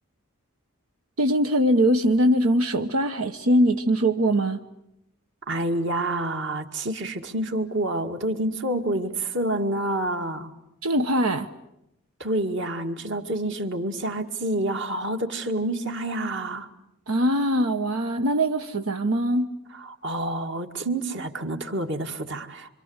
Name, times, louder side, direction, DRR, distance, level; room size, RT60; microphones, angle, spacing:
voice 1, 1.2-4.6 10.8-11.5 17.1-19.5, right 1 dB, 85° right, 7 dB, 1.2 m, -22 dB
voice 2, 5.5-10.5 12.2-16.7 19.8-22.7, right 1 dB, 55° right, 6 dB, 2.2 m, -28 dB
27.0 x 26.5 x 8.1 m, 0.83 s
head